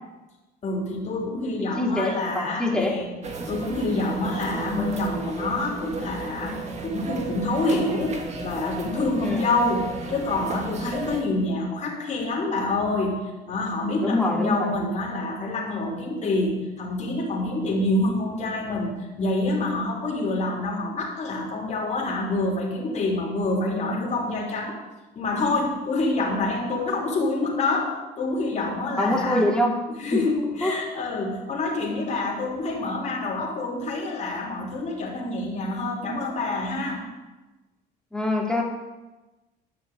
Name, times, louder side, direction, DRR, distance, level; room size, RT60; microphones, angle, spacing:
voice 1, 0.6-3.1 3.5-24.7 25.1-29.5 30.0-37.0, left 2 dB, 45° left, -2 dB, 3.4 m, -27 dB
voice 2, 1.8-2.9 3.3-3.5 9.2-9.4 14.0-14.7 29.0-29.7 30.1-30.2 30.6-30.7 38.1-38.6, left 1 dB, 5° left, -1 dB, 2.6 m, -24 dB
sound 1, 3.2-11.2, right 4 dB, 40° right, 1.7 m, -34 dB
11.0 x 6.1 x 8.8 m, 1.1 s
cardioid pair, 110°, 17 cm